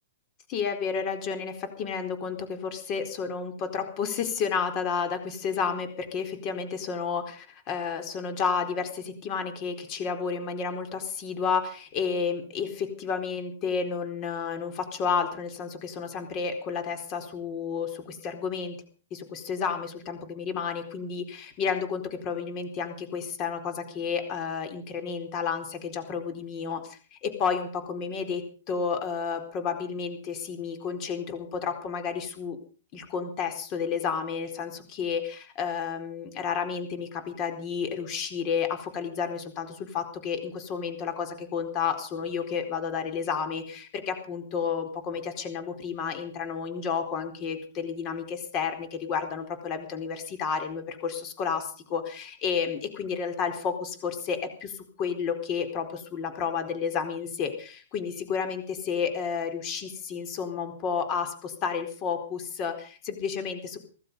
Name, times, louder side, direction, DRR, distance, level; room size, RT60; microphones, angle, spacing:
voice 1, 0.5-18.8 19.1-32.6 32.9-63.8, left 6 dB, 30° left, 7 dB, 4.2 m, -31 dB
16.5 x 14.5 x 5.4 m, 0.41 s
hypercardioid pair, 150°, 0 cm